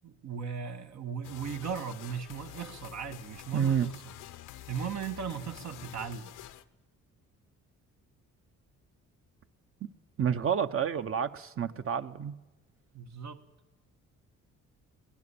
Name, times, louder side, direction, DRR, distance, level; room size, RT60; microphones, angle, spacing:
voice 1, 0.0-3.9 4.7-6.3 12.9-13.4, right 7 dB, 65° right, 5 dB, 1.6 m, -37 dB
sound 1, 1.2-6.6, left 13 dB, 90° left, 0.9 m, -48 dB
voice 2, 3.5-3.9 10.2-12.3, right 7 dB, 45° right, 10 dB, 1.1 m, -29 dB
23.0 x 18.5 x 7.1 m, 1.1 s
cardioid pair, 90°, 30 cm